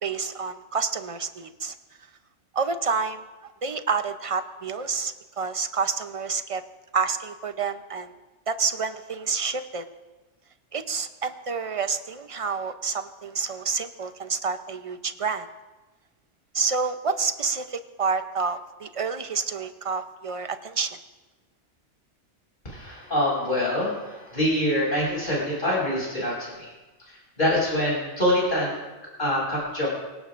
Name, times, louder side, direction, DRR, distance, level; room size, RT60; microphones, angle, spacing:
voice 1, 0.0-1.7 2.5-3.2 3.6-6.6 6.9-8.1 8.5-9.9 10.7-15.5 16.5-21.0, right 5 dB, 35° right, 9 dB, 0.7 m, -28 dB
voice 2, 22.6-26.7 27.0-28.8 29.2-29.9, left 1 dB, 40° left, -6 dB, 7.1 m, -25 dB
23.5 x 18.0 x 2.6 m, 1.1 s
omnidirectional pair, 1.3 m